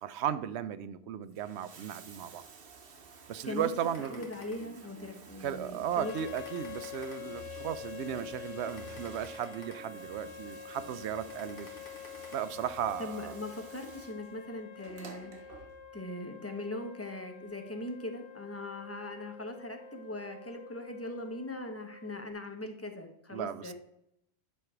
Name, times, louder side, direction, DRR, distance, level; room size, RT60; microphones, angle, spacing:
voice 1, 0.0-2.4 3.3-4.3 5.4-11.7 12.3-13.3 23.3-23.7, right 9 dB, 85° right, 14 dB, 0.8 m, -35 dB
Bathtub (filling or washing), 1.2-16.1 17.3-17.4, right 5 dB, 65° right, 1.1 m, -53 dB
sound 1, 3.9-5.1 5.6-5.7 6.1-7.7 8.2-8.3 8.7-10.3 10.8-10.9 11.3-12.3, left 2 dB, 60° left, 1.9 m, -51 dB
voice 2, 4.0-6.1 13.0-15.5 15.9-23.7, left 1 dB, 15° left, 4 dB, 0.8 m, -40 dB
sound 2, 6.0-22.3, left 8 dB, 85° left, 1.0 m, -47 dB
9.4 x 3.3 x 5.9 m, 0.78 s
omnidirectional pair, 1.1 m